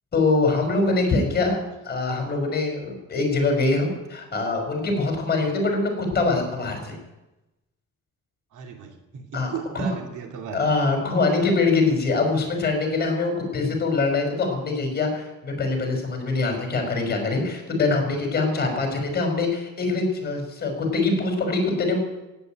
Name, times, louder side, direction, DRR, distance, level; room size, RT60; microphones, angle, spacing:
voice 1, 0.1-1.6 1.8-7.0 9.3-9.5 9.7-9.9 10.5-22.0, left 3 dB, 35° left, 3 dB, 5.6 m, -23 dB
voice 2, 8.5-10.6, right 6 dB, 85° right, 2 dB, 2.7 m, -36 dB
16.0 x 9.1 x 9.4 m, 1.0 s
cardioid pair, 150°, 30 cm